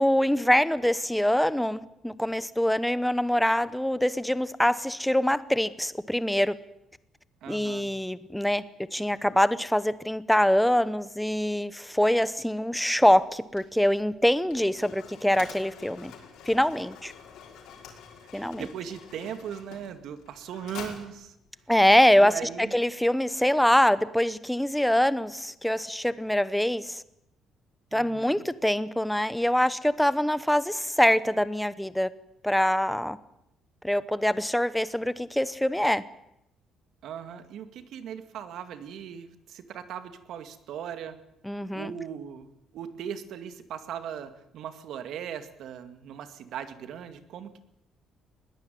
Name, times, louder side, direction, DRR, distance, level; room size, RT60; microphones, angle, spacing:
voice 1, 0.0-6.5 7.5-8.6 8.9-16.1 16.5-17.1 18.3-18.7 21.7-22.3 22.6-27.0 27.9-32.1 32.4-33.2 33.8-36.0 41.4-41.9, left 1 dB, 5° left, 15 dB, 0.9 m, -24 dB
voice 2, 7.4-7.9 18.3-21.3 22.2-22.7 27.9-28.4 37.0-41.2 41.7-42.5 42.7-47.6, right 8 dB, 60° right, 10 dB, 2.2 m, -39 dB
Mechanisms, 13.0-22.7, left 7 dB, 75° left, 5.7 m, -48 dB
21.0 x 17.5 x 9.3 m, 0.81 s
cardioid pair, 165°, 0 cm